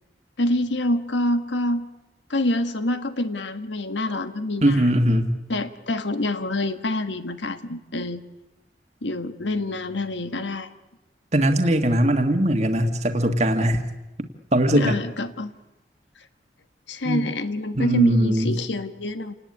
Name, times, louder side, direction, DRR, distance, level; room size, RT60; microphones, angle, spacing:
voice 1, 0.4-1.9 2.3-4.9 5.5-8.2 9.0-10.7 14.7-15.5 16.9-19.3, left 1 dB, 80° left, 10 dB, 1.5 m, -26 dB
voice 2, 4.6-5.3 11.3-13.8 14.5-15.0 17.0-17.2 17.7-18.5, right 1 dB, 40° right, 5 dB, 1.8 m, -20 dB
29.0 x 18.5 x 9.8 m, 1.0 s
head